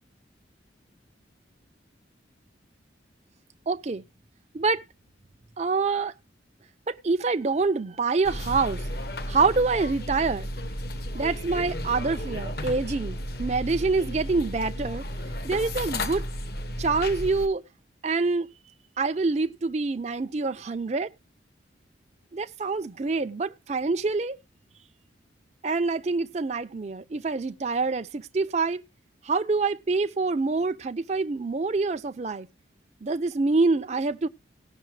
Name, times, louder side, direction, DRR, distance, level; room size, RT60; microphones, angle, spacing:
voice 1, 3.7-4.0 4.5-4.9 5.6-6.1 6.9-8.9 9.3-10.5 11.1-15.0 15.4-16.2 16.8-17.6 18.0-18.5 19.0-21.1 22.3-24.4 25.6-28.8 29.2-32.5 33.0-34.3, right 3 dB, 35° right, 0.4 m, -26 dB
sound 1, 8.2-17.5, left 1 dB, 55° left, 0.8 m, -33 dB
18.0 x 6.4 x 3.2 m
head